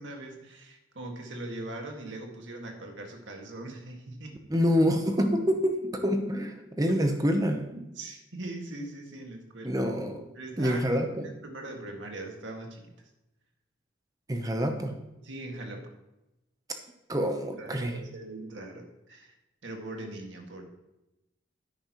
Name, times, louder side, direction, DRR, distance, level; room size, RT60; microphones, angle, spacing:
voice 1, 0.0-4.4 7.7-9.7 10.4-10.9 11.2-12.8 15.2-15.9 17.1-17.2 17.6-19.4 19.6-20.6, right 2 dB, 75° right, 2 dB, 1.8 m, -41 dB
voice 2, 4.5-7.6 9.6-10.3 10.6-11.3 14.3-14.9 17.1-18.0, equal, 20° right, 5 dB, 0.8 m, -27 dB
10.5 x 9.0 x 3.0 m, 0.95 s
head